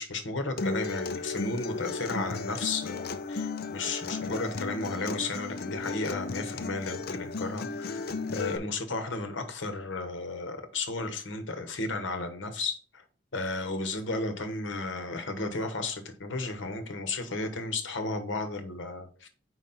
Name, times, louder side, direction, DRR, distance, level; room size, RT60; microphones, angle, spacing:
voice 1, 0.0-13.0 13.3-19.3, left 3 dB, 75° left, 1.1 m, -34 dB
Acoustic guitar, 0.6-8.6, left 3 dB, 50° left, 0.5 m, -35 dB
4.7 x 4.1 x 5.7 m
head